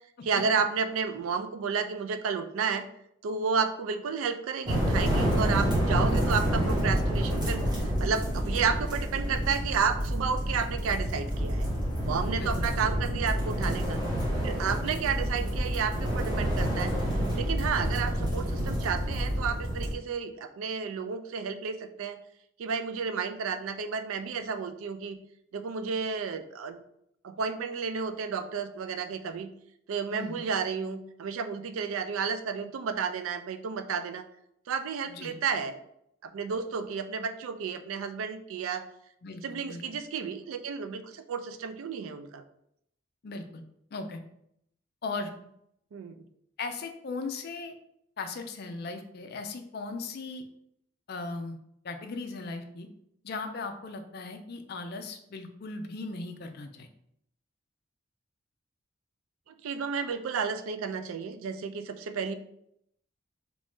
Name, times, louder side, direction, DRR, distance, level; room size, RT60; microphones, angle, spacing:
voice 1, 0.2-2.9 3.2-11.7 12.0-14.0 14.4-16.9 17.3-22.2 22.6-25.2 25.5-26.8 27.2-29.5 29.9-34.2 34.7-35.8 36.2-38.8 39.4-42.4 45.9-46.2 59.5-62.3, right 6 dB, 80° right, 9 dB, 0.3 m, -32 dB
sound 1, 4.7-19.9, equal, 20° right, 1.2 m, -28 dB
voice 2, 12.3-12.8 14.9-15.1 30.1-30.4 35.1-35.4 39.2-39.8 43.2-43.6 43.9-44.2 45.0-45.3 46.6-47.7 48.2-50.4 51.1-51.6 51.8-52.9 53.2-56.9, left 3 dB, 50° left, 7 dB, 0.4 m, -38 dB
3.0 x 2.6 x 3.5 m, 0.74 s
head